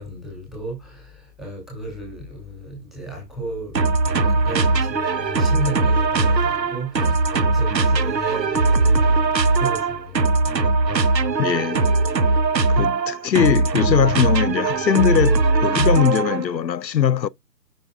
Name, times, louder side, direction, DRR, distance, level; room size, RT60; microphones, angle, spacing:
voice 1, 0.0-9.3 9.6-10.5, right 1 dB, ahead, 2.4 m, -34 dB
sound 1, 3.8-16.5, right 3 dB, 80° right, 1.2 m, -20 dB
voice 2, 11.4-11.9 12.7-17.3, left 9 dB, 85° left, 0.7 m, -20 dB
9.3 x 5.9 x 2.3 m
figure-of-eight pair, 165°, 50 cm